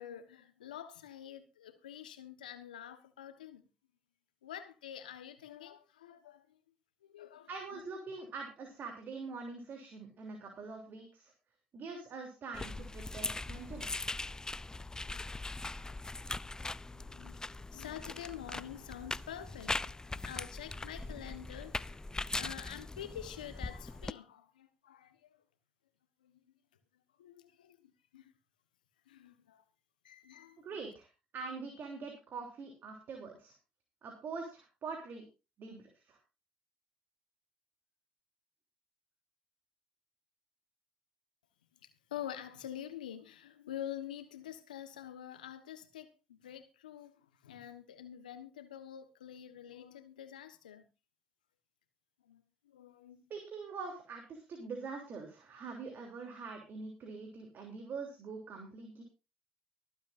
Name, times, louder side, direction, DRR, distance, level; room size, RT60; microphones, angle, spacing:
voice 1, 0.0-3.6 4.4-6.6 7.0-7.8 16.9-17.4 17.7-25.4 26.2-26.4 27.2-28.3 29.1-29.6 30.0-30.9 41.7-50.8 52.2-53.3, left 10 dB, 90° left, 1.3 m, -47 dB
voice 2, 7.5-11.3 11.7-13.9 30.6-31.1 31.3-33.5 34.0-35.2 35.6-36.2 53.3-59.0, right 4 dB, 50° right, 3.3 m, -44 dB
sound 1, 12.5-24.1, left 2 dB, 15° left, 0.5 m, -41 dB
24.0 x 8.3 x 2.6 m
hypercardioid pair, 55°, 4 cm